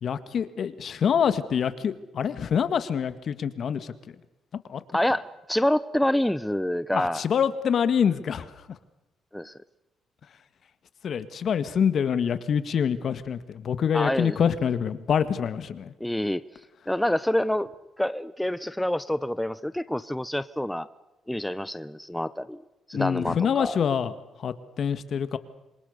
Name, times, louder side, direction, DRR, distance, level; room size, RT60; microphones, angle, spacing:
voice 1, 0.0-3.9 4.7-4.8 6.9-8.5 11.0-15.9 22.9-24.1 24.4-25.4, left 7 dB, 55° left, 12 dB, 1.9 m, -26 dB
voice 2, 4.9-7.2 9.3-9.5 13.9-14.4 16.0-16.4 16.9-17.7 18.0-20.9 21.3-22.6 22.9-23.8, left 1 dB, 5° left, 15 dB, 0.8 m, -27 dB
26.5 x 25.0 x 6.8 m, 0.95 s
cardioid pair, 90°, 0 cm